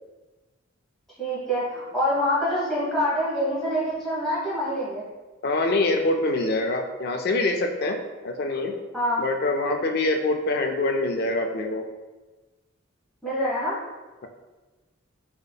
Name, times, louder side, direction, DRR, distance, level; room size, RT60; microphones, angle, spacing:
voice 1, 1.2-5.0 8.9-9.2 13.2-13.8, equal, ahead, -11 dB, 1.1 m, -25 dB
voice 2, 5.4-8.0 8.2-8.7 9.2-11.8, left 2 dB, 50° left, 4 dB, 0.4 m, -24 dB
3.6 x 3.4 x 2.3 m, 1.2 s
head